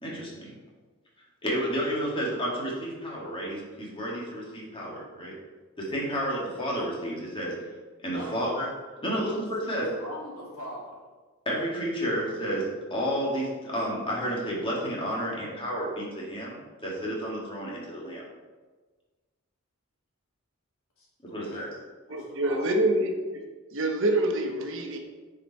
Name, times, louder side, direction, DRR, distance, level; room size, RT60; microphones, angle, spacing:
voice 1, 0.0-0.5 1.4-5.4 5.8-7.5 8.0-8.7 9.0-9.9 11.5-18.2 21.3-21.7, equal, 25° left, -5 dB, 2.2 m, -31 dB
voice 2, 8.1-8.6 9.1-11.0 21.0-21.7 22.1-22.7, equal, 80° left, -4 dB, 2.5 m, -42 dB
voice 3, 22.1-25.0, right 1 dB, 65° right, 4 dB, 1.1 m, -26 dB
9.8 x 4.9 x 4.2 m, 1.3 s
head